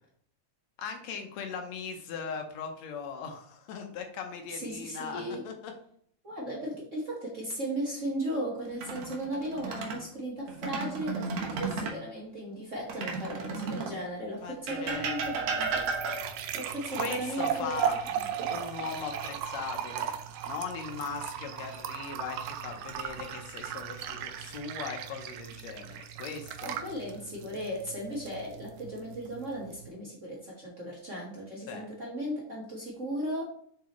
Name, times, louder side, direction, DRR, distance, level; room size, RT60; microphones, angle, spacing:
voice 1, 0.8-5.7 14.4-15.2 17.0-20.1 20.5-26.8 31.7-31.9, left 6 dB, 70° left, 4 dB, 1.7 m, -39 dB
voice 2, 4.5-5.5 6.2-15.9 16.5-18.3 26.6-33.4, right 1 dB, 45° right, -4 dB, 0.9 m, -36 dB
sound 1, 8.7-10.0 10.5-12.0 12.9-14.0 14.7-16.5 18.4-19.1 19.5-19.7 22.6-23.2 23.9-24.6, right 4 dB, 65° right, 2.0 m, -34 dB
sound 2, 14.9-29.9, right 9 dB, 80° right, 1.7 m, -37 dB
7.2 x 5.0 x 3.1 m, 0.63 s
omnidirectional pair, 3.8 m